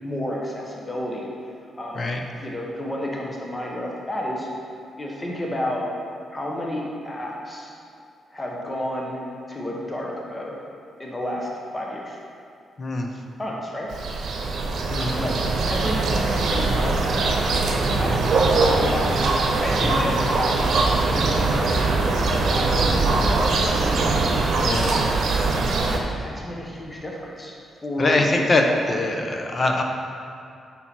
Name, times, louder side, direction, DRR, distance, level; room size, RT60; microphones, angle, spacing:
voice 1, 0.0-1.3 1.8-2.1 2.4-4.5 5.0-5.8 6.3-7.7 8.3-10.6 11.0-12.2 13.4-13.9 15.0-15.3 15.6-16.9 18.0-19.2 19.6-20.9 21.1-24.0 24.6-24.8 25.8-25.9 26.2-27.5 27.8-29.3, left 1 dB, 15° left, -2 dB, 1.1 m, -31 dB
voice 2, 12.8-13.1 14.9-15.3 19.9-20.1 24.6-24.9 28.0-29.8, left 2 dB, 35° left, 3 dB, 0.8 m, -23 dB
sound 1, 13.9-26.0, right 3 dB, 70° right, 1.0 m, -22 dB
8.6 x 5.7 x 4.5 m, 2.4 s
cardioid pair, 120°, 0 cm